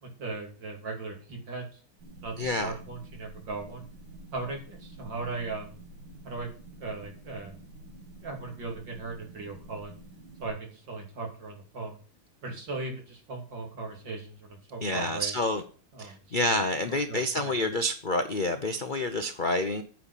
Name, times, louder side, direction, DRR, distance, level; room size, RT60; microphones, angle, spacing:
voice 1, 0.0-1.8 2.2-3.9 4.3-5.8 6.2-6.5 6.8-7.6 8.2-9.9 10.4-12.0 12.4-15.3 15.9-16.2 17.1-17.7, right 3 dB, 65° right, 3.5 m, -38 dB
sound 1, 2.0-10.5, right 2 dB, 90° right, 2.7 m, -48 dB
voice 2, 2.4-2.7 14.8-15.6 16.0-19.8, left 1 dB, 55° left, 0.5 m, -28 dB
9.1 x 5.7 x 8.3 m
omnidirectional pair, 2.2 m